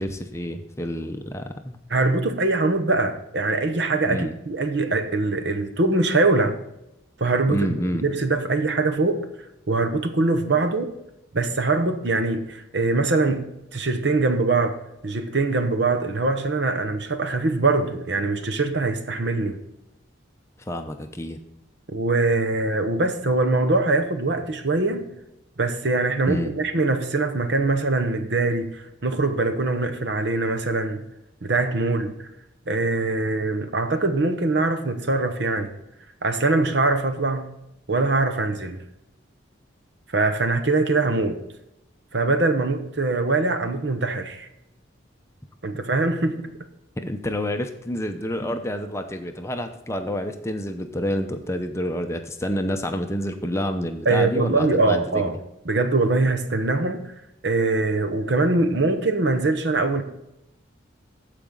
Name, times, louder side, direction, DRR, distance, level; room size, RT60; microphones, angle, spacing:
voice 1, 0.0-1.8 4.1-4.3 7.5-8.0 20.7-21.4 26.3-26.5 47.0-55.3, equal, 15° left, 0.6 m, -28 dB
voice 2, 1.9-6.6 7.2-7.7 8.0-9.3 9.7-10.9 11.3-14.8 15.0-19.6 21.9-25.1 25.6-31.0 31.4-32.3 32.7-35.8 36.2-37.5 37.9-38.8 40.1-41.4 42.1-44.5 45.6-46.4 54.0-55.4 55.6-57.1 57.4-60.0, right 3 dB, 60° right, 0.9 m, -23 dB
14.5 x 5.0 x 3.8 m
head